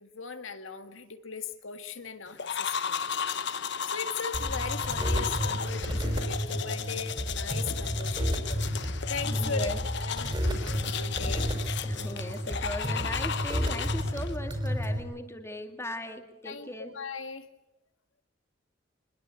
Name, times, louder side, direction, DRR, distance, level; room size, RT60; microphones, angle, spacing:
voice 1, 0.0-3.2 3.6-8.5 9.1-9.7 10.0-11.5 16.5-17.5, left 5 dB, 85° left, 8 dB, 1.9 m, -39 dB
sound 1, 2.4-14.4, left 7 dB, 60° left, 1.1 m, -35 dB
sound 2, 4.3-15.0, equal, 25° right, 5.1 m, -31 dB
voice 2, 9.2-9.8 11.8-17.0, left 1 dB, 15° left, 6 dB, 2.3 m, -38 dB
24.0 x 21.5 x 8.4 m, 0.86 s
head